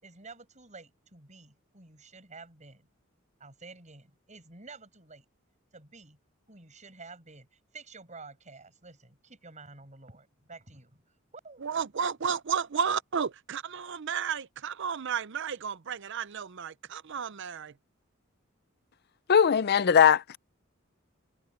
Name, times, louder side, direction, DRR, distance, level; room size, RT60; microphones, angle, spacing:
voice 1, 0.0-2.9 3.4-5.2 5.7-6.2 6.5-11.0 11.3-11.7 12.0-12.2, right 3 dB, 35° right, 7.5 m, -50 dB
voice 2, 11.6-17.8, right 7 dB, 60° right, 0.6 m, -32 dB
voice 3, 19.3-20.4, left 7 dB, 50° left, 0.5 m, -20 dB
head